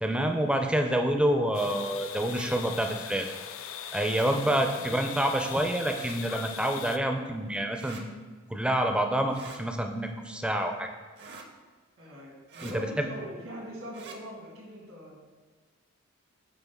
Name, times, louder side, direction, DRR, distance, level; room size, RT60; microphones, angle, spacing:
voice 1, 0.0-3.3 3.9-8.0 8.5-10.9 12.6-12.9, right 1 dB, 5° right, 4 dB, 0.4 m, -27 dB
sound 1, 1.5-7.0, left 9 dB, 75° left, 0.4 m, -40 dB
sound 2, 2.3-2.5 4.0-4.3 5.9-6.2 7.8-8.0 9.3-9.6 11.2-11.5 12.5-12.8 13.9-14.2, right 4 dB, 55° right, 0.7 m, -46 dB
voice 2, 4.8-5.2 12.0-15.2, equal, 80° right, -3 dB, 1.8 m, -42 dB
8.2 x 3.6 x 3.6 m, 1.5 s
head